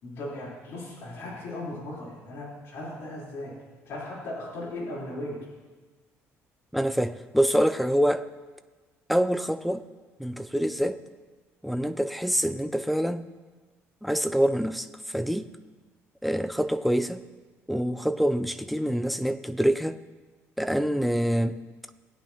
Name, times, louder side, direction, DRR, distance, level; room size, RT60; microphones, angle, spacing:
voice 1, 0.0-3.6 3.9-5.4, left 1 dB, 55° left, -7 dB, 4.1 m, -37 dB
voice 2, 6.7-8.3 9.1-9.8 10.2-11.0 11.6-13.3 14.0-15.5 16.2-17.2 17.7-20.0 20.6-21.6, equal, ahead, 9 dB, 0.3 m, -26 dB
19.5 x 9.0 x 3.0 m, 1.3 s
cardioid pair, 170°, 5 cm